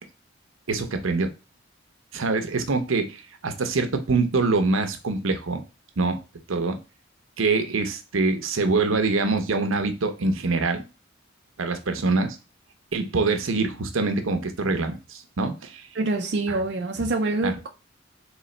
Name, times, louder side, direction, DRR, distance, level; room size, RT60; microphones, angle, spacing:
voice 1, 0.7-1.3 2.1-5.6 6.0-6.2 6.5-6.8 7.4-10.9 11.6-12.4 12.9-15.9 16.5-16.6 17.0-17.1 17.4-17.5, right 3 dB, 90° right, 0.8 m, -24 dB
voice 2, 15.9-17.7, right 2 dB, 55° right, 0.5 m, -26 dB
4.0 x 3.1 x 3.2 m
head